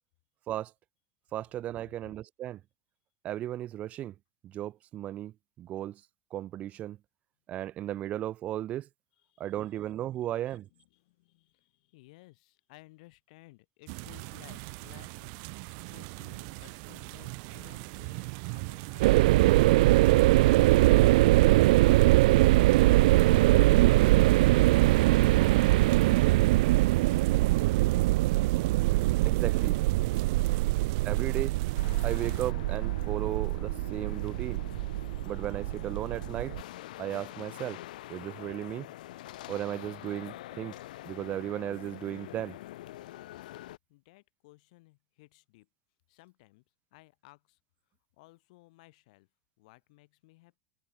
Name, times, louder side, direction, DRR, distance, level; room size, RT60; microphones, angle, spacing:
voice 1, 1.3-2.6 3.2-4.1 4.4-5.3 5.6-6.0 6.3-7.0 7.5-8.9 9.4-10.7 29.2-29.8 31.0-31.6 32.0-34.6 35.3-36.5 37.0-37.8 38.1-38.9 39.5-40.7 41.1-42.6, right 13 dB, 35° right, 0.7 m, -35 dB
voice 2, 9.2-9.9 10.2-21.4 21.7-24.2 24.7-26.4 26.9-28.6 43.9-45.7 46.1-46.6 46.9-47.6 48.2-49.3 49.6-50.6, left 22 dB, 65° left, 5.8 m, -58 dB
sound 1, 13.9-32.5, right 40 dB or more, 55° right, 2.5 m, -41 dB
sound 2, 19.0-36.6, right 19 dB, 70° right, 0.3 m, -23 dB
sound 3, 31.7-43.8, left 15 dB, 80° left, 0.8 m, -46 dB
supercardioid pair, 140°, 4 cm